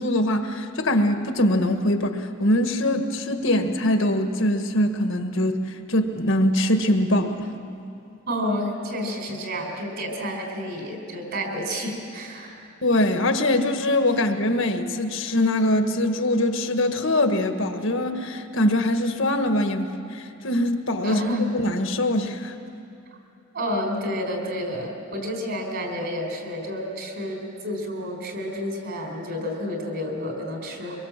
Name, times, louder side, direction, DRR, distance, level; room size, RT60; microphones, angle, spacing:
voice 1, 0.0-7.5 12.8-21.2 21.5-22.5, left 1 dB, 65° left, 6 dB, 1.6 m, -23 dB
voice 2, 8.3-12.7 21.0-21.5 23.5-31.0, equal, 55° right, 2 dB, 4.5 m, -30 dB
24.5 x 22.0 x 7.5 m, 2.7 s
head